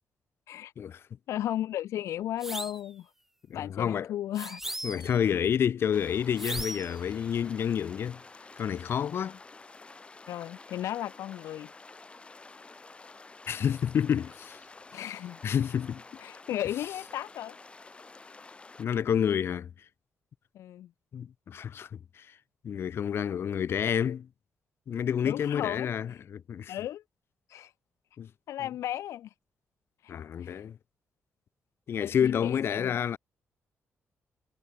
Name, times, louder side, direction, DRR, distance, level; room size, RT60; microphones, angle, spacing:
voice 1, 1.3-3.1 3.5-4.6 10.3-11.7 14.9-15.4 16.2-17.6 20.5-20.9 25.2-25.9 26.7-27.0 27.5-27.7 28.5-29.3 30.0-30.6 32.0-32.9, left 12 dB, 90° left, 1.5 m, -35 dB
sound 1, 2.4-2.9 4.3-5.2 6.4-7.0, right 1 dB, 5° right, 5.0 m, -37 dB
voice 2, 3.5-4.1 4.8-8.2 8.6-9.4 13.5-14.6 15.4-16.0 18.8-19.7 21.1-22.4 22.6-24.3 24.9-26.7 28.2-28.3 30.1-30.8 31.9-33.2, left 8 dB, 55° left, 0.7 m, -29 dB
sound 2, 5.9-18.9, left 3 dB, 25° left, 4.3 m, -50 dB
cardioid pair, 120°, 5 cm